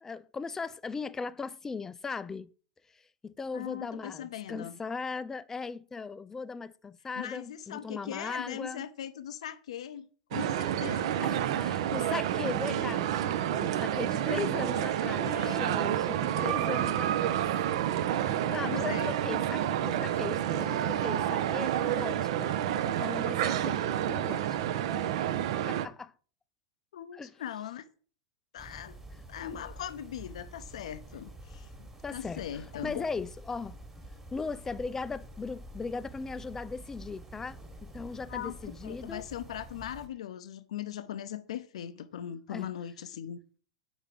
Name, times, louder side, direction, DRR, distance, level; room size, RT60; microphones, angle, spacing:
voice 1, 0.0-2.5 2.9-8.9 11.2-17.4 18.0-24.8 25.7-26.1 27.1-27.3 32.0-33.8 34.3-39.2 42.5-42.7, left 4 dB, 15° left, 0.3 m, -38 dB
voice 2, 3.5-4.8 7.2-11.3 14.3-14.5 15.2-15.7 18.3-19.1 26.9-27.8 28.5-29.0 29.3-33.0 38.3-43.4, left 10 dB, 80° left, 0.5 m, -40 dB
sound 1, 10.3-25.9, right 11 dB, 70° right, 0.5 m, -29 dB
sound 2, 28.6-40.1, right 1 dB, 10° right, 1.3 m, -48 dB
5.0 x 4.4 x 5.1 m
hypercardioid pair, 115°, 3 cm